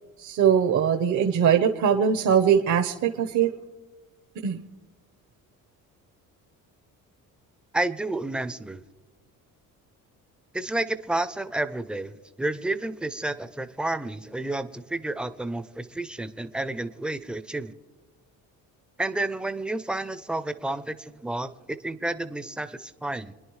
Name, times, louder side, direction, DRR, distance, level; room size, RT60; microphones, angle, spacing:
voice 1, 0.2-3.5 4.4-4.6, right 8 dB, 55° right, 1.0 m, -21 dB
voice 2, 7.7-8.8 10.5-17.7 19.0-23.3, right 2 dB, 5° right, 0.5 m, -30 dB
27.0 x 10.5 x 3.2 m
cardioid pair, 130°, 35 cm